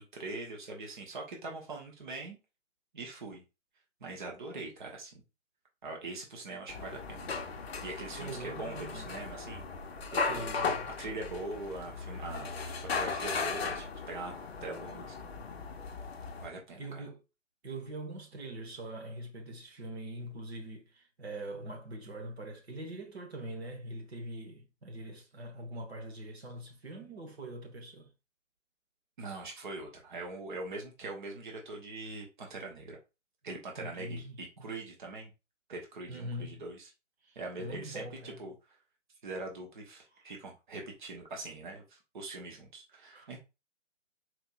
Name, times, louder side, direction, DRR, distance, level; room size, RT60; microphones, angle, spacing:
voice 1, 0.0-2.4 2.9-3.4 4.0-5.2 5.8-7.3 7.8-9.6 10.1-10.6 11.0-14.3 14.6-15.3 16.4-17.0 29.2-33.0 33.4-35.3 35.7-36.9 37.3-38.5 39.2-43.4, right 2 dB, 40° right, 0.9 m, -42 dB
sound 1, 6.7-16.5, left 4 dB, 50° left, 0.6 m, -37 dB
voice 2, 8.2-9.2 10.2-11.0 16.8-17.2 17.6-28.1 33.8-34.8 36.1-36.6 37.2-38.5 43.1-43.4, right 1 dB, 55° right, 1.1 m, -43 dB
4.2 x 2.8 x 2.4 m
figure-of-eight pair, 135°, 39 cm